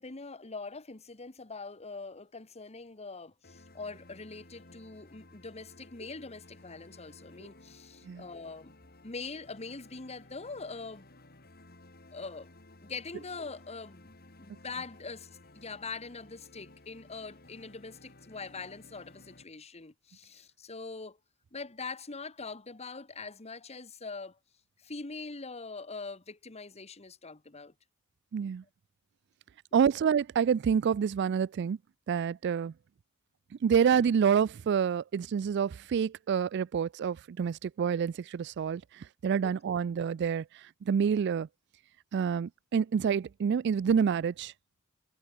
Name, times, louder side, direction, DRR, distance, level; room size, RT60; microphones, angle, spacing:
voice 1, 0.0-8.7 9.0-11.1 12.1-12.5 12.8-14.1 14.4-21.2 21.5-24.4 24.8-27.7 39.4-39.5, left 4 dB, 30° left, 1.3 m, -43 dB
sound 1, 3.4-19.4, left 2 dB, 45° left, 4.1 m, -56 dB
voice 2, 28.3-28.6 29.7-31.8 32.1-32.7 33.6-40.4 40.9-41.5 42.1-44.5, right 7 dB, 55° right, 0.3 m, -27 dB
head